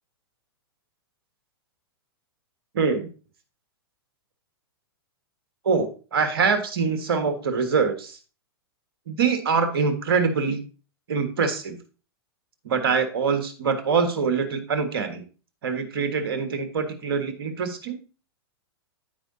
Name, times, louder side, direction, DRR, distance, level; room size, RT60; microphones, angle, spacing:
voice 1, 2.7-3.1 5.6-8.2 9.1-10.6 11.1-11.8 12.6-15.2 15.6-18.0, right 5 dB, 70° right, 7 dB, 1.5 m, -24 dB
13.5 x 4.7 x 2.7 m, 0.35 s
hypercardioid pair, 110°, 13 cm